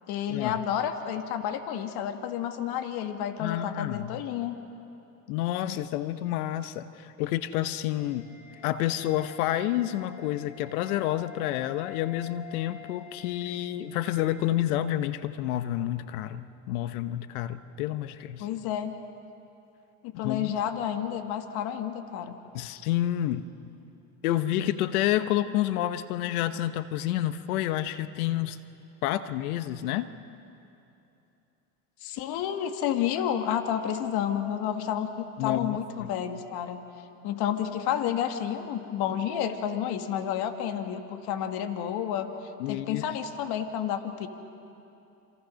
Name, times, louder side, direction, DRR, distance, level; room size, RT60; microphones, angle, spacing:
voice 1, 0.1-4.6 18.4-19.0 20.0-22.4 32.0-36.8 37.2-42.3 42.7-44.3, left 9 dB, 60° left, 6 dB, 2.0 m, -30 dB
voice 2, 3.4-4.2 5.3-8.3 8.6-18.5 20.2-20.5 22.5-23.4 24.2-28.6 29.0-30.1 35.4-36.1 42.6-43.0, left 13 dB, 80° left, 12 dB, 1.1 m, -29 dB
sound 1, 8.0-14.5, left 11 dB, 15° left, 7.2 m, -48 dB
27.5 x 27.5 x 6.4 m, 2.8 s
supercardioid pair, 105°, 43 cm